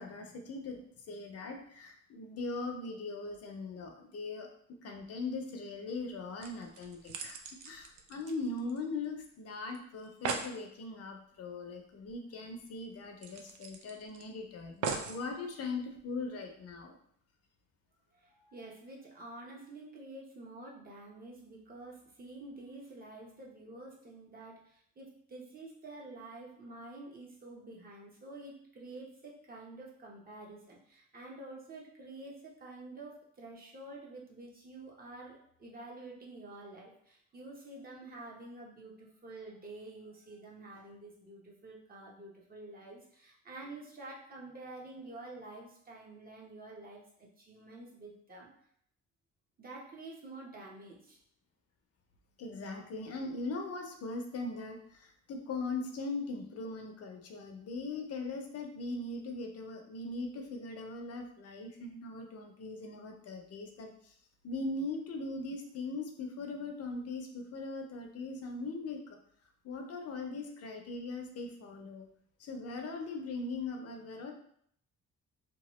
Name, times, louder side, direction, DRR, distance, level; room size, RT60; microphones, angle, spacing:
voice 1, 0.0-4.5 4.8-17.0 52.4-64.1 64.4-69.2 69.6-72.1 72.4-74.3, left 3 dB, 55° left, 3 dB, 0.6 m, -40 dB
sound 1, 6.4-9.1 9.3-9.4 9.7-9.8 10.0-10.6 12.1-12.2 12.5-12.6 13.2-14.2 14.8-15.2 16.0-16.1, right 5 dB, 75° right, 0.5 m, -39 dB
voice 2, 18.1-48.5 49.6-51.2, right 2 dB, 30° right, -2 dB, 0.9 m, -49 dB
2.9 x 2.3 x 3.0 m, 0.66 s
cardioid pair, 90°, 30 cm